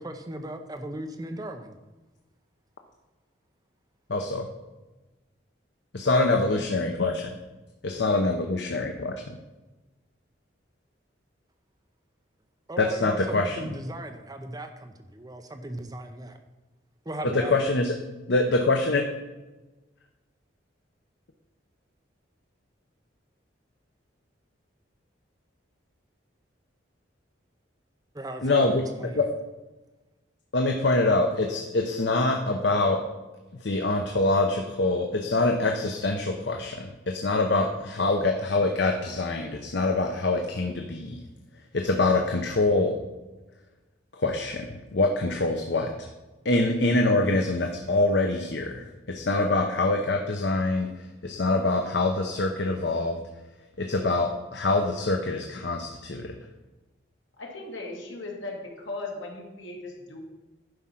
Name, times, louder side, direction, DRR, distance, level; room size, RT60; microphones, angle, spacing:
voice 1, 0.0-1.8 12.7-16.4 17.1-17.5 28.1-29.2, right 1 dB, 20° right, 6 dB, 0.6 m, -37 dB
voice 2, 4.1-4.5 5.9-7.3 7.8-9.4 12.8-13.7 17.5-18.0 18.3-19.1 28.4-29.3 30.5-33.0 33.6-41.2 41.7-43.0 44.1-46.1 46.4-53.2 53.8-56.4, left 2 dB, 65° left, 4 dB, 0.7 m, -25 dB
voice 3, 57.4-60.2, left 2 dB, 80° left, 0 dB, 2.1 m, -37 dB
11.5 x 4.9 x 5.8 m, 1.1 s
head